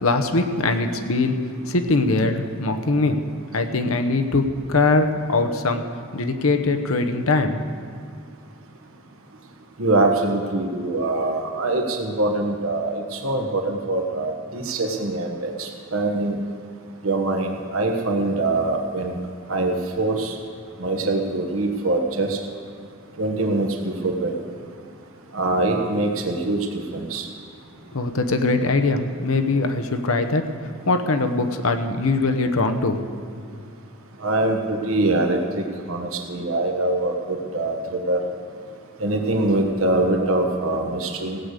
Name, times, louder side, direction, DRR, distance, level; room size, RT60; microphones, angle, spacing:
voice 1, 0.0-1.3 1.7-3.2 3.5-5.8 6.1-7.6 27.9-30.4 30.9-33.0, left 3 dB, 90° left, 6 dB, 1.0 m, -21 dB
voice 2, 9.8-16.3 17.0-19.2 19.5-20.3 20.8-22.4 23.2-24.3 25.3-26.6 26.9-27.2 34.2-37.8 38.0-38.2 39.0-41.4, right 2 dB, 75° right, 2 dB, 1.3 m, -23 dB
16.5 x 6.6 x 8.2 m, 2.2 s
head